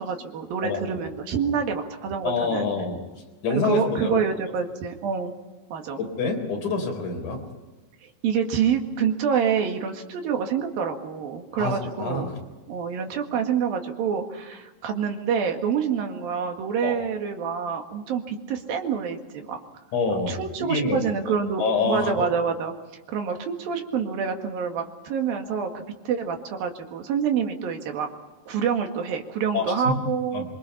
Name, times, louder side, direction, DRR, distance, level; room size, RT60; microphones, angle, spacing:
voice 1, 0.0-2.7 3.7-5.3 5.7-6.0 8.0-12.3 12.7-19.6 20.3-22.7 23.1-28.1 28.5-30.4, right 7 dB, 85° right, 4 dB, 3.7 m, -27 dB
voice 2, 0.6-1.1 2.2-3.0 3.4-4.2 6.0-7.4 11.5-12.3 16.8-16.9 19.9-21.0 21.6-22.3 29.5-29.9 30.3-30.5, left 3 dB, 60° left, 2 dB, 5.5 m, -26 dB
25.5 x 24.0 x 5.7 m, 1.2 s
omnidirectional pair, 4.1 m